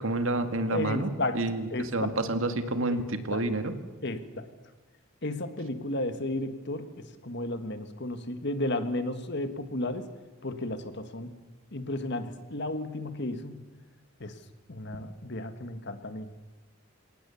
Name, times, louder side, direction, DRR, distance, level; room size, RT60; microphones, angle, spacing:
voice 1, 0.0-1.6 1.9-3.7, right 2 dB, 75° right, 8 dB, 2.0 m, -29 dB
voice 2, 0.7-1.4 1.7-2.2 3.3-3.5 4.0-4.5 5.2-10.1 10.4-11.3 11.7-13.5 14.2-14.4 14.7-16.3, left 1 dB, 55° left, 9 dB, 1.7 m, -33 dB
27.0 x 18.0 x 7.1 m, 1.2 s
head